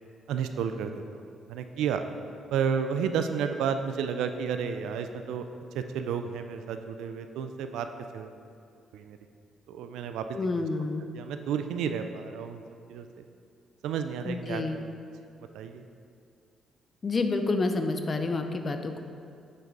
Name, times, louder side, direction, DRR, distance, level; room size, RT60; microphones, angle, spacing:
voice 1, 0.3-1.0 1.5-2.0 2.5-5.5 5.7-7.9 8.1-8.4 8.9-9.2 9.7-10.7 11.1-12.6 12.9-13.2 13.8-14.6 15.5-15.8, right 7 dB, 85° right, 8 dB, 0.4 m, -31 dB
voice 2, 10.3-11.1 14.2-14.8 17.0-19.0, left 3 dB, 35° left, 6 dB, 0.5 m, -29 dB
7.5 x 4.7 x 3.9 m, 2.4 s
cardioid pair, 90°, 0 cm